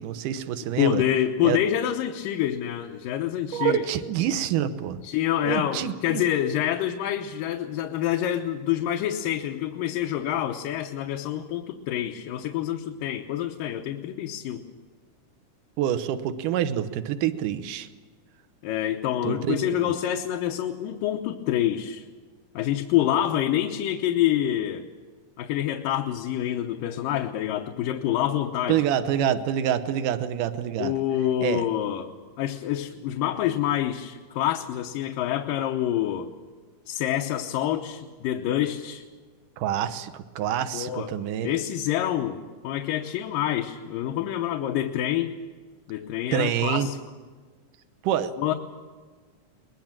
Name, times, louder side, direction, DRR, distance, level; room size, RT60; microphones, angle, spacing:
voice 1, 0.0-1.0 1.4-1.6 3.5-5.0 5.5-6.2 15.8-17.9 19.2-19.9 28.7-30.9 31.4-31.6 39.6-41.5 46.3-46.9 48.0-48.3, right 10 dB, 75° right, 11 dB, 2.6 m, -26 dB
voice 2, 0.8-3.9 5.0-14.6 18.6-22.0 22.6-24.9 25.4-28.8 30.8-32.1 32.4-36.3 36.9-39.0 40.7-41.2 41.4-45.3 45.9-47.0 48.4-48.5, left 11 dB, 85° left, 3 dB, 2.7 m, -27 dB
22.5 x 21.0 x 7.5 m, 1.5 s
omnidirectional pair, 3.8 m